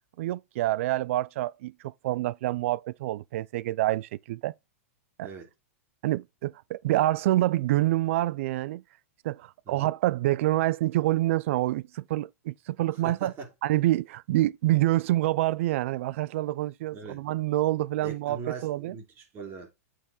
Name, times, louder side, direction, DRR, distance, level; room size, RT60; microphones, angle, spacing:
voice 1, 0.2-4.5 5.2-5.3 6.0-8.8 9.2-13.3 13.6-19.0, right 16 dB, 60° right, 0.5 m, -27 dB
voice 2, 13.0-13.5 16.9-17.2 18.0-19.7, right 5 dB, 30° right, 2.6 m, -40 dB
8.7 x 4.7 x 3.9 m
supercardioid pair, 150°, 8 cm